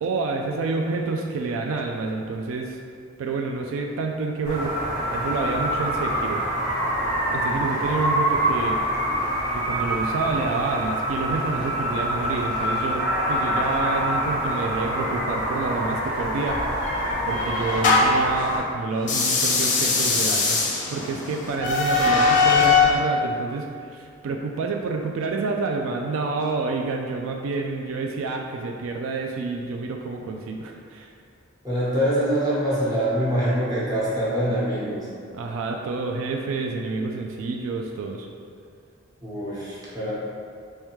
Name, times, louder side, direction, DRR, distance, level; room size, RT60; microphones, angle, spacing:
voice 1, 0.0-2.8 3.2-4.7 5.1-6.4 7.3-8.8 9.5-16.7 17.2-20.6 20.9-31.1 35.3-38.3, right 3 dB, 80° right, 2 dB, 0.3 m, -28 dB
sound 1, 4.5-18.6, equal, 65° right, 1.4 m, -26 dB
sound 2, 16.5-18.3 19.0-23.0, left 4 dB, 40° left, 0.5 m, -21 dB
voice 2, 31.6-35.1 39.2-40.1, equal, 20° right, -9 dB, 1.0 m, -24 dB
3.5 x 3.2 x 3.1 m, 2.3 s
head